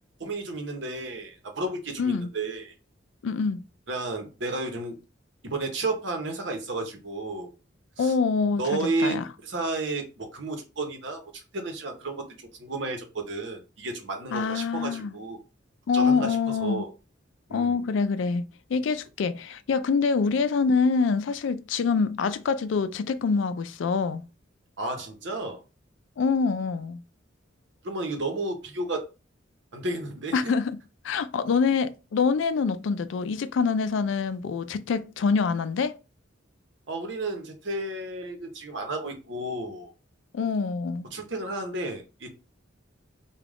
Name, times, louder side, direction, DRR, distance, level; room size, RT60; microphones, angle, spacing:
voice 1, 0.2-2.7 3.9-5.0 5.4-7.5 8.0-8.1 8.6-15.4 15.9-16.9 17.5-17.8 24.8-25.6 27.8-29.1 29.7-30.5 36.9-39.9 41.1-42.3, right 2 dB, 65° right, 0.9 m, -32 dB
voice 2, 2.0-2.3 3.2-3.6 8.0-9.2 14.3-15.1 15.9-16.9 17.5-24.2 26.2-27.0 30.3-30.8 31.0-35.9 40.3-41.1, left 5 dB, 70° left, 0.4 m, -25 dB
3.4 x 2.3 x 3.6 m
head